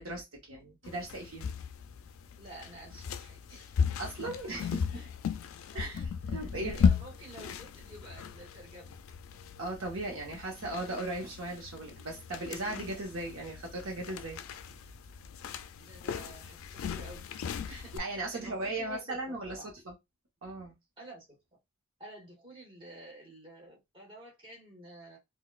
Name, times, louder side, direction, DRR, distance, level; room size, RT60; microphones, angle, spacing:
voice 1, 0.0-1.5 4.0-5.0 5.7-6.0 6.3-6.8 9.6-14.4 17.7-19.6 19.9-20.0 20.4-20.7, right 2 dB, 65° right, 0 dB, 1.0 m, -37 dB
sound 1, 0.8-18.0, left 6 dB, 70° left, 0.3 m, -36 dB
voice 2, 2.4-3.8 4.6-5.1 5.7-9.0 15.7-17.2 17.7-19.7 21.0-21.4 22.0-25.2, right 1 dB, 25° right, -2 dB, 1.3 m, -50 dB
4.0 x 2.3 x 2.3 m, 0.20 s
head